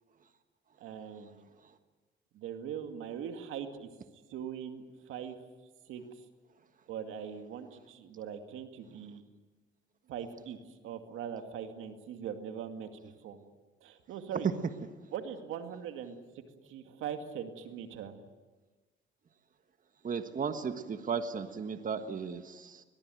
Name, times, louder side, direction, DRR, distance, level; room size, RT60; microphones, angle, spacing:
voice 1, 0.8-1.4 2.3-3.9 4.3-5.4 5.9-6.2 6.9-9.2 10.1-10.6 10.8-13.4 13.8-14.5 15.1-18.1, right 8 dB, 90° right, 6 dB, 2.3 m, -41 dB
voice 2, 20.0-22.8, right 6 dB, 40° right, 8 dB, 1.5 m, -35 dB
22.0 x 21.5 x 9.2 m, 1.3 s
cardioid pair, 90°, 20 cm